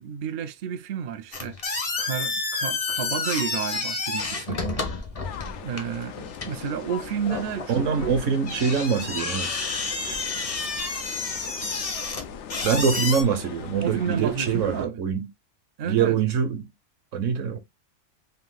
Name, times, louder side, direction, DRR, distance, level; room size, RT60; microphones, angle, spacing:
voice 1, 0.0-4.6 5.6-8.1 13.8-15.0 15.8-16.2, right 7 dB, 60° right, 0.5 m, -31 dB
sound 1, 1.3-13.2, left 3 dB, 35° left, 0.7 m, -30 dB
sound 2, 5.2-14.9, left 7 dB, 70° left, 0.9 m, -40 dB
voice 2, 7.7-9.6 12.6-15.3 15.8-16.7 17.1-17.6, right 6 dB, 75° right, 1.1 m, -24 dB
3.5 x 2.7 x 3.8 m
omnidirectional pair, 1.3 m